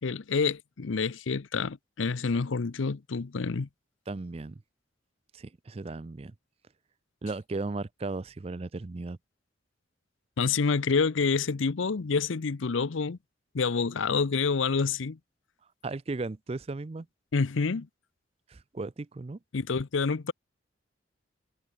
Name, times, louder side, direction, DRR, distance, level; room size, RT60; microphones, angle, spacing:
voice 1, 0.0-3.7 10.4-13.2 13.5-15.2 17.3-17.9 19.5-20.3, left 4 dB, 85° left, 0.7 m, -28 dB
voice 2, 4.1-4.6 5.3-6.3 7.2-9.2 15.8-17.1 18.5-19.4, right 3 dB, 30° right, 0.4 m, -36 dB
head